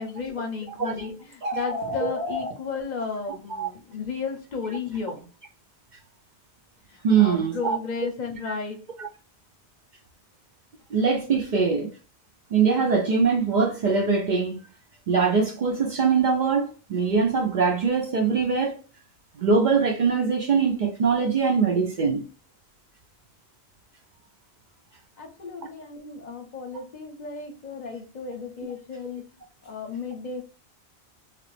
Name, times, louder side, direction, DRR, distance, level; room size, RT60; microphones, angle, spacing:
voice 1, 0.0-5.3 7.2-8.8 25.2-29.2 29.6-30.4, left 5 dB, 50° left, 0.7 m, -34 dB
voice 2, 0.7-1.1 2.0-2.1 3.5-3.7 7.0-7.8 8.5-8.6 9.0-9.1 10.9-11.9 12.5-14.6 15.1-18.8 19.4-22.2, right 5 dB, 55° right, 0.6 m, -22 dB
sound 1, 1.3-2.5, equal, 75° right, 1.2 m, -30 dB
2.9 x 2.5 x 3.2 m
omnidirectional pair, 1.1 m